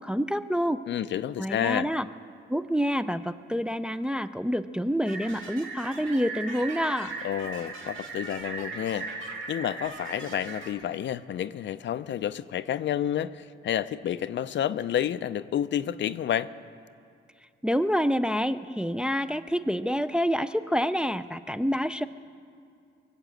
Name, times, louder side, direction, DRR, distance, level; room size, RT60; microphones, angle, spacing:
voice 1, 0.0-0.8 1.4-2.1 2.5-7.1 17.6-22.1, equal, 5° right, 11 dB, 0.4 m, -27 dB
voice 2, 0.9-1.9 7.2-16.5, left 10 dB, 65° left, 14 dB, 0.5 m, -30 dB
sound 1, 5.0-10.7, right 3 dB, 75° right, 2.3 m, -38 dB
23.0 x 8.2 x 7.6 m, 2.4 s
cardioid pair, 110°, 20 cm